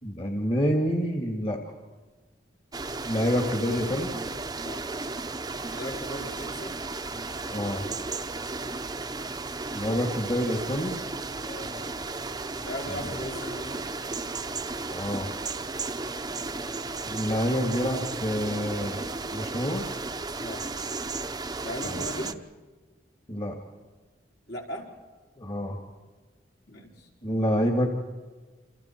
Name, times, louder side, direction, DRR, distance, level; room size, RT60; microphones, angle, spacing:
voice 1, 0.0-1.6 3.0-4.1 7.5-7.9 9.7-11.0 12.9-13.0 14.9-15.3 17.0-19.9 21.8-22.0 23.3-23.5 25.4-25.8 27.2-27.9, equal, 35° left, 3 dB, 2.1 m, -27 dB
sound 1, 2.7-22.3, right 3 dB, 20° right, 0.8 m, -34 dB
voice 2, 5.7-6.8 8.7-9.0 11.4-11.8 12.6-13.8 20.4-20.7 21.6-22.4 24.5-24.9 26.7-27.1, equal, 70° left, -2 dB, 4.6 m, -38 dB
28.5 x 27.0 x 4.5 m, 1.3 s
head